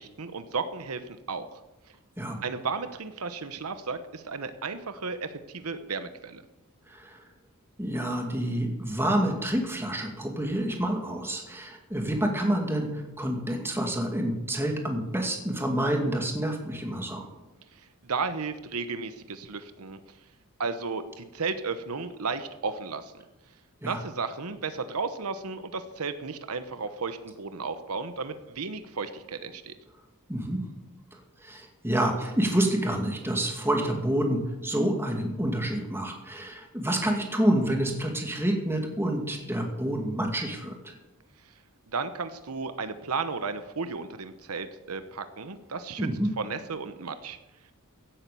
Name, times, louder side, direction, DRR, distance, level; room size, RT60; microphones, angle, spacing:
voice 1, 0.0-1.5 2.4-6.4 17.8-20.0 20.6-23.1 23.8-29.7 41.9-46.1 46.4-47.4, right 4 dB, 80° right, 10 dB, 1.0 m, -34 dB
voice 2, 6.9-7.2 7.8-17.3 23.8-24.0 30.3-30.7 31.1-40.9 46.0-46.3, right 1 dB, 10° right, 2 dB, 2.4 m, -28 dB
16.0 x 8.8 x 7.0 m, 1.0 s
head